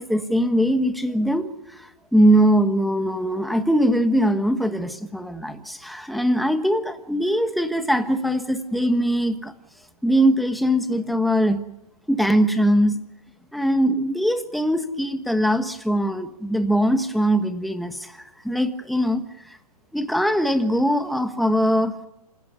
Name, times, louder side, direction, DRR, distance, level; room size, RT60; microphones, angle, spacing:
voice 1, 0.0-1.5 1.8-9.5 10.0-11.6 12.1-13.0 13.5-19.2 19.9-22.0, equal, ahead, 8 dB, 1.4 m, -21 dB
26.5 x 17.0 x 9.5 m, 0.93 s
hypercardioid pair, 140°, 20 cm